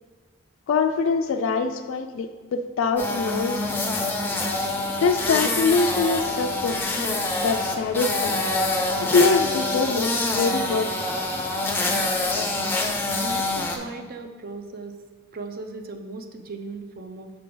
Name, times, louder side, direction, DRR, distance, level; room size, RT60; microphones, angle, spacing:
voice 1, 0.7-3.8 5.0-7.2 7.4-8.4 9.0-11.1, left 4 dB, 70° left, 6 dB, 0.3 m, -24 dB
sound 1, 3.0-13.8, left 2 dB, 10° left, 0.5 m, -26 dB
voice 2, 13.2-15.0 15.3-17.3, right 3 dB, 45° right, 6 dB, 0.5 m, -37 dB
6.7 x 5.2 x 3.8 m, 1.5 s
head